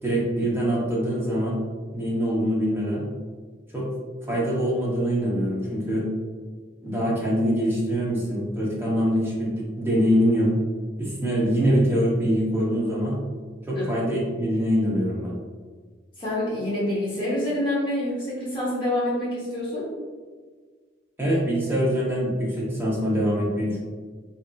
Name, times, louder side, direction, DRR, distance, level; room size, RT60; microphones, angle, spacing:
voice 1, 0.0-1.6 1.9-3.1 3.7-3.9 4.3-6.1 6.8-10.5 11.0-13.2 13.6-15.3 21.2-23.8, equal, 10° right, -6 dB, 0.7 m, -24 dB
voice 2, 16.2-19.9, left 1 dB, 25° left, -7 dB, 0.9 m, -27 dB
3.3 x 2.6 x 2.3 m, 1.5 s
head